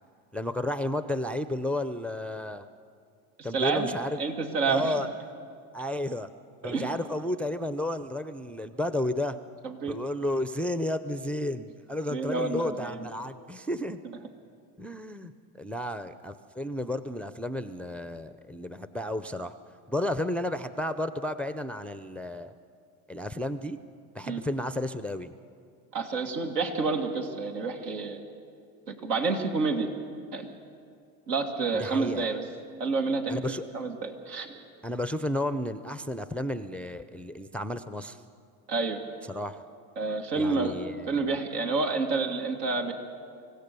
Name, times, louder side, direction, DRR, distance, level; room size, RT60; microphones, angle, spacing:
voice 1, 0.3-2.7 3.4-4.2 4.7-5.1 5.7-6.3 6.6-9.4 9.9-14.0 14.8-15.3 15.6-19.5 19.9-22.5 23.1-23.8 24.1-25.3 31.7-32.3 33.3-33.7 34.8-38.2 39.3-39.6 40.3-41.3, left 1 dB, 5° left, 11 dB, 0.4 m, -32 dB
voice 2, 3.4-5.1 6.6-6.9 9.6-10.0 12.1-13.1 24.3-24.4 25.9-28.2 28.9-29.9 30.3-30.5 31.3-32.4 32.8-33.4 33.7-34.6 38.7-39.0 40.0-40.8 41.1-42.9, right 4 dB, 90° right, 3 dB, 2.3 m, -29 dB
25.5 x 15.5 x 6.8 m, 2.3 s
supercardioid pair, 100°, 46 cm